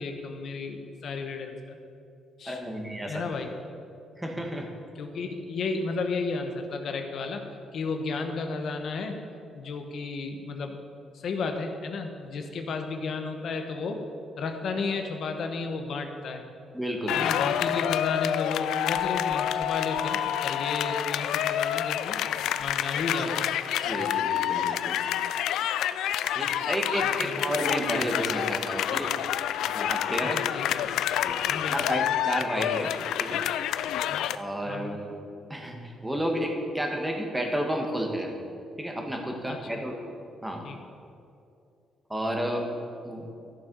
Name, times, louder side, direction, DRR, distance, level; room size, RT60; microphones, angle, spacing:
voice 1, 0.0-1.8 2.4-2.6 3.1-3.5 5.0-7.5 7.7-9.2 9.5-10.8 11.1-14.0 14.4-16.4 17.1-22.2 22.6-23.5 27.0-27.5 30.3-30.9 31.5-31.9 34.1-34.3 34.6-35.0 39.5-39.8 40.6-40.8, left 4 dB, 65° left, 5 dB, 1.2 m, -33 dB
voice 2, 2.5-3.3 4.2-4.7 16.7-17.4 23.8-25.0 26.3-29.1 29.7-30.4 31.2-31.4 31.7-32.9 33.2-33.4 34.3-35.1 35.5-38.3 38.8-39.9 40.4-40.6 42.1-42.7 43.0-43.3, equal, 10° right, 2 dB, 1.7 m, -31 dB
sound 1, 17.1-34.4, left 11 dB, 85° left, 0.3 m, -28 dB
13.0 x 7.1 x 5.4 m, 2.5 s
cardioid pair, 90°, 0 cm